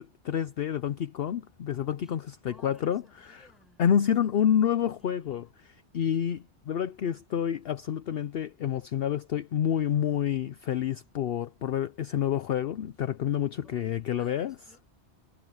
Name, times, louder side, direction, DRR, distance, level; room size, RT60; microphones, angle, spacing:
voice 1, 0.0-3.5 3.8-5.4 5.9-14.5, left 9 dB, 60° left, 0.8 m, -28 dB
voice 2, 2.4-4.1 4.4-4.6 5.0-5.5 13.6-14.9, equal, ahead, 5.2 m, -59 dB
omnidirectional pair, 1.2 m